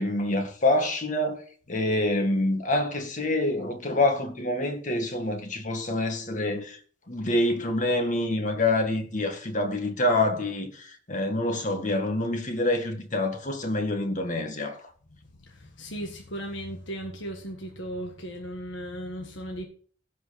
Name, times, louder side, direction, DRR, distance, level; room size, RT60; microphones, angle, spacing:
voice 1, 0.0-6.8 7.1-14.8, left 1 dB, 40° left, 1.9 m, -26 dB
voice 2, 15.3-19.7, equal, 70° left, 1.6 m, -36 dB
16.0 x 5.5 x 4.2 m
head